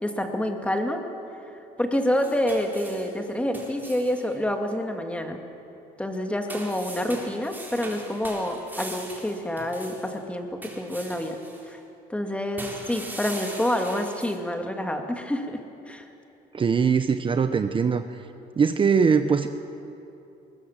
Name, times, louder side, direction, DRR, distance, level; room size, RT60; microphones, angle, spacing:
voice 1, 0.0-1.1 1.8-5.4 6.0-11.4 11.7-11.8 12.1-15.6 15.9-16.1, left 1 dB, 5° left, 4 dB, 2.2 m, -28 dB
sound 1, 2.1-4.3 6.5-10.2 10.6-11.6 12.6-14.4, right 2 dB, 10° right, 4.2 m, -41 dB
voice 2, 16.5-18.2 18.6-19.5, right 6 dB, 30° right, 9 dB, 0.8 m, -21 dB
21.0 x 19.0 x 7.5 m, 2.9 s
cardioid pair, 110°, 17 cm